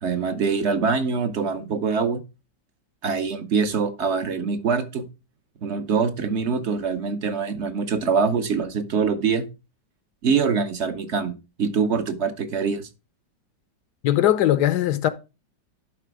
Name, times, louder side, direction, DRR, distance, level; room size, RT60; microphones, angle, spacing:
voice 1, 0.0-2.2 3.0-5.0 5.6-9.4 10.2-12.9, right 5 dB, 50° right, 0.9 m, -24 dB
voice 2, 14.0-15.1, left 12 dB, 70° left, 1.1 m, -19 dB
11.0 x 4.2 x 4.7 m
omnidirectional pair, 2.0 m